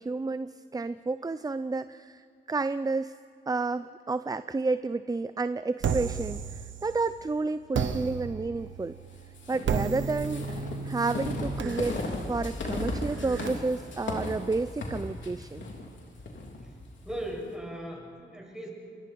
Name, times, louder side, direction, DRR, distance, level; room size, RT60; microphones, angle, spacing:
voice 1, 0.0-3.1 3.5-9.0 9.5-12.0 12.3-15.7, right 3 dB, 20° right, 13 dB, 0.5 m, -31 dB
sound 1, 5.8-7.2 7.7-13.5, right 6 dB, 80° right, 1.2 m, -34 dB
sound 2, 9.3-17.2, left 2 dB, 75° left, 3.5 m, -36 dB
voice 2, 17.0-18.7, right 1 dB, 5° right, 0 dB, 6.3 m, -38 dB
28.0 x 22.0 x 4.6 m, 2.4 s
cardioid pair, 70°, 19 cm